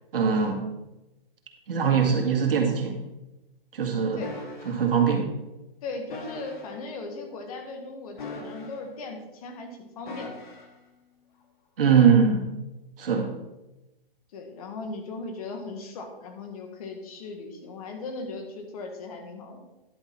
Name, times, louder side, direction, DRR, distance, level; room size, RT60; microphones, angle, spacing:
voice 1, 0.1-0.6 1.7-3.0 3.7-4.2 4.7-5.3 11.8-12.5 13.0-13.3, right 6 dB, 70° right, 2 dB, 2.2 m, -22 dB
sound 1, 4.2-4.8 6.1-6.8 8.1-9.0 10.1-10.8 11.9-12.2, left 3 dB, 55° left, 1.9 m, -41 dB
voice 2, 5.8-10.4 14.3-19.6, left 3 dB, 40° left, 4 dB, 1.4 m, -38 dB
10.5 x 6.3 x 4.4 m, 1.0 s
hypercardioid pair, 155°, 29 cm